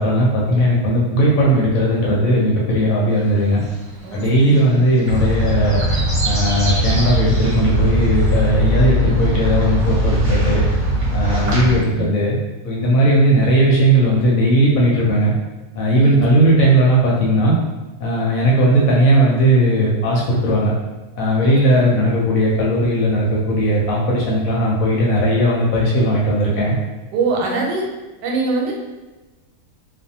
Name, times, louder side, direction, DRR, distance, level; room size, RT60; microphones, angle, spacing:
voice 1, 0.0-3.6 4.1-5.8 6.2-10.6 11.1-12.4 12.6-15.3 15.8-17.5 18.0-20.7 21.2-26.7, right 1 dB, 70° left, -3 dB, 0.9 m, -17 dB
sound 1, 3.1-10.7 11.0-11.1, right 1 dB, 35° right, 0.7 m, -33 dB
voice 2, 4.0-5.0 11.3-12.2 15.9-16.6 21.4-22.0 27.1-27.9 28.2-28.7, right 3 dB, 90° right, -1 dB, 1.2 m, -25 dB
sound 2, 5.1-11.8, equal, 55° right, 1.0 m, -20 dB
2.5 x 2.2 x 2.7 m, 1.2 s
omnidirectional pair, 1.7 m